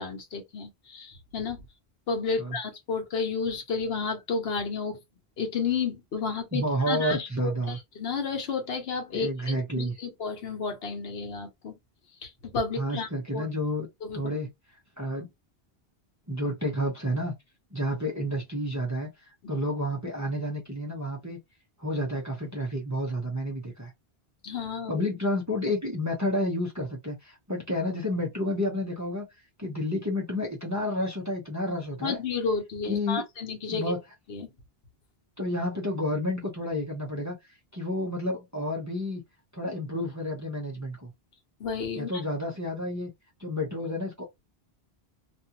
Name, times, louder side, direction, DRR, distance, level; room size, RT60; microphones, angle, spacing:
voice 1, 0.0-1.6 2.1-5.0 5.4-11.7 12.2-13.5 14.0-14.2 24.4-25.0 32.0-33.9 34.3-34.5 41.6-42.2, left 5 dB, 70° left, 1.0 m, -32 dB
voice 2, 6.5-7.8 9.1-9.9 12.8-13.9 14.1-14.5 15.0-15.3 16.3-17.3 17.7-19.1 19.5-21.4 21.8-23.9 24.9-29.3 29.6-32.2 32.8-33.2 33.7-34.0 35.4-37.4 37.7-39.2 39.5-41.1 42.0-43.1 43.4-44.2, left 1 dB, 20° right, 0.6 m, -30 dB
2.5 x 2.3 x 2.8 m
omnidirectional pair, 1.1 m